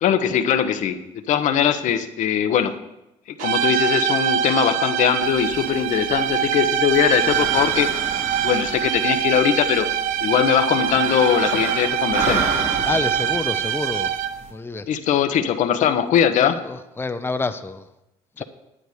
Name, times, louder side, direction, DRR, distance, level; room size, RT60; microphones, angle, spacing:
voice 1, 0.0-2.7 3.3-7.9 8.4-9.9 10.2-12.5 14.9-16.6 18.4-18.5, left 9 dB, 60° left, 8 dB, 1.0 m, -21 dB
sound 1, 3.4-14.5, right 9 dB, 70° right, 0.6 m, -24 dB
sound 2, 5.2-14.5, right 4 dB, 55° right, 2.7 m, -32 dB
voice 2, 12.8-14.1 14.5-14.9 16.4-17.8 18.4-18.5, left 3 dB, 15° left, 9 dB, 0.7 m, -28 dB
11.0 x 9.0 x 5.0 m, 0.91 s
hypercardioid pair, 65°, 14 cm